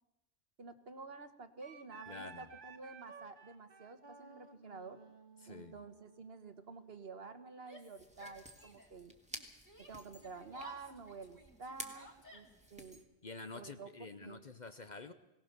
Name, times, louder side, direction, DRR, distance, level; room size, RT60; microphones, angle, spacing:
voice 1, 0.6-5.0 5.5-9.1 9.8-13.0 13.5-13.9 14.2-14.4, right 4 dB, 55° right, 1.5 m, -50 dB
Wind instrument woodwind instrument, 1.6-7.0, right 5 dB, 40° right, 1.9 m, -56 dB
voice 2, 2.1-2.5 5.4-5.7 13.2-15.1, left 3 dB, 40° left, 0.9 m, -48 dB
Yell, 7.6-9.0 9.3-12.8, right 1 dB, 15° left, 2.7 m, -56 dB
sound 1, 8.0-13.0, right 1 dB, 5° right, 1.9 m, -52 dB
22.0 x 18.0 x 6.8 m
omnidirectional pair, 1.2 m